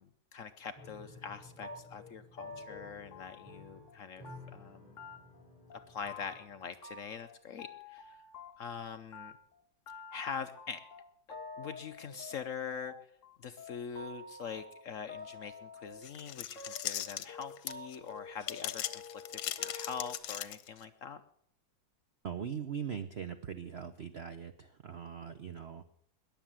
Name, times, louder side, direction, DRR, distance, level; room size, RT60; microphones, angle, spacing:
voice 1, 0.0-4.2 4.5-5.0 5.7-8.2 8.6-9.4 10.1-10.8 11.3-12.9 13.4-19.0 19.3-21.2, left 6 dB, 65° left, 9 dB, 0.8 m, -43 dB
Piano, 0.7-6.7, left 3 dB, 20° left, 4.2 m, -54 dB
sound 1, 1.6-4.0 4.2-4.7 5.0-5.4 5.7-6.5 6.8-8.8 9.1-20.2, left 3 dB, 40° left, 1.7 m, -49 dB
sound 2, 16.0-18.0 18.4-20.8, left 12 dB, 85° left, 1.6 m, -38 dB
voice 2, 22.2-25.8, right 7 dB, 70° right, 10 dB, 0.6 m, -41 dB
21.0 x 7.3 x 7.4 m, 0.67 s
omnidirectional pair, 2.2 m